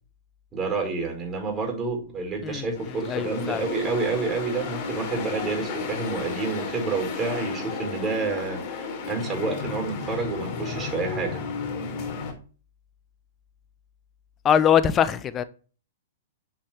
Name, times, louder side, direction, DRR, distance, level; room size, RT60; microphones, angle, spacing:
voice 1, 0.5-11.4, right 4 dB, 20° right, 5.4 m, -29 dB
sound 1, 2.8-12.3, left 4 dB, 45° left, 4.6 m, -33 dB
voice 2, 3.1-3.7 14.4-15.4, left 9 dB, 25° left, 0.8 m, -22 dB
9.8 x 8.6 x 3.1 m
hypercardioid pair, 115°, 0 cm